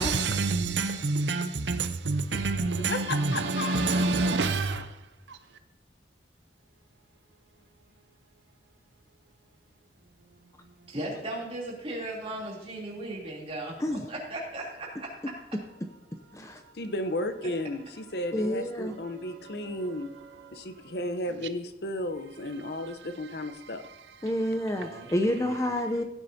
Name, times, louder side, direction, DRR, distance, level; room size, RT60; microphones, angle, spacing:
voice 1, 0.0-5.0 5.3-5.4 19.1-19.8 20.4-20.7 21.4-21.5 24.8-25.1, right 3 dB, 75° right, 0.7 m, -28 dB
voice 2, 2.8-4.1 16.7-20.1 20.5-23.8, left 1 dB, 60° left, 0.8 m, -34 dB
voice 3, 10.9-15.3 24.8-25.6, right 1 dB, 35° right, 3.1 m, -37 dB
voice 4, 18.3-18.9 24.2-26.0, left 1 dB, 15° left, 0.5 m, -28 dB
16.0 x 9.9 x 2.8 m
head